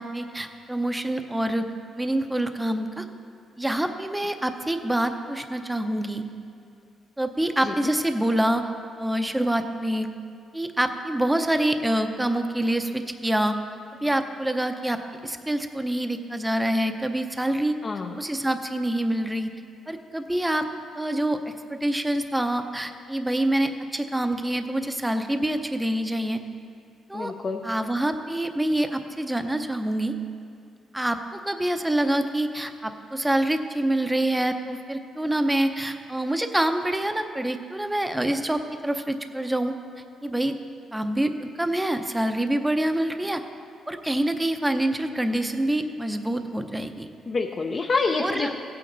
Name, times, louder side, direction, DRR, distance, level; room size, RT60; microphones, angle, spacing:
voice 1, 0.0-1.7 2.0-3.1 3.6-6.3 7.2-8.7 9.0-10.1 10.5-13.6 14.0-17.8 18.2-19.5 19.9-20.7 21.0-26.4 27.1-27.3 27.6-30.2 30.9-39.7 40.2-40.5 40.9-43.4 43.9-47.1 48.2-48.5, right 1 dB, 10° right, 6 dB, 0.7 m, -26 dB
voice 2, 17.8-18.2 27.1-27.6 47.3-48.6, left 4 dB, 40° left, 2 dB, 0.6 m, -27 dB
16.0 x 8.6 x 4.0 m, 2.3 s
cardioid pair, 90°, 0 cm